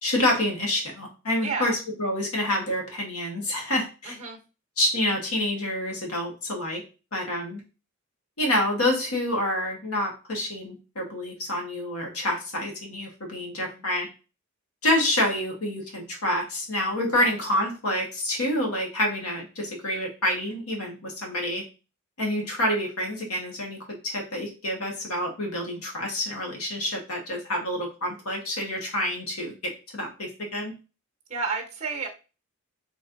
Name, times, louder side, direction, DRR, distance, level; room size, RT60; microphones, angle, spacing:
voice 1, 0.0-4.2 4.8-6.8 7.1-7.6 8.4-14.1 14.8-21.6 22.2-30.7, left 1 dB, 85° left, 1 dB, 1.4 m, -28 dB
voice 2, 1.4-1.8 4.0-4.4 13.6-13.8 17.1-17.3 31.3-32.1, right 4 dB, 35° right, 1 dB, 0.9 m, -31 dB
4.2 x 3.2 x 2.6 m, 0.31 s
head